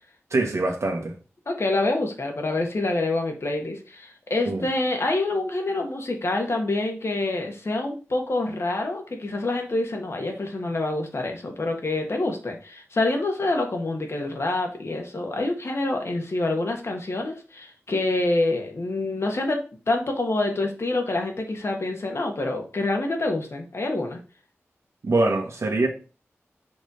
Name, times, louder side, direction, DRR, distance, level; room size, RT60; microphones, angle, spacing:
voice 1, 0.3-1.1 4.4-4.7 25.0-25.9, right 2 dB, 70° right, 1.4 m, -23 dB
voice 2, 1.5-24.2, left 2 dB, 65° left, 1.5 m, -26 dB
5.2 x 3.3 x 5.5 m
wide cardioid pair, 60°, 5 cm